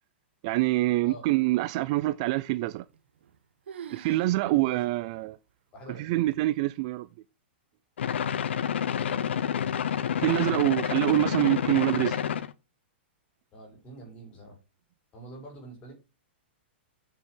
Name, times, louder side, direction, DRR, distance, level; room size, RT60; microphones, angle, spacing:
voice 1, 0.4-2.9 3.9-5.4 6.0-7.1 9.0-9.3 10.2-12.2, right 18 dB, 35° right, 0.4 m, -26 dB
sound 1, 2.9-3.4 3.7-4.4 4.7-4.8 5.5-5.6 6.3-6.7, right 8 dB, 75° right, 1.2 m, -44 dB
voice 2, 4.5-4.9 5.7-6.2 13.5-14.6 15.1-15.9, right 2 dB, 20° left, 5.0 m, -45 dB
sound 2, 8.0-12.5, left 8 dB, 80° left, 0.8 m, -29 dB
7.4 x 6.2 x 6.5 m
hypercardioid pair, 165°, 6 cm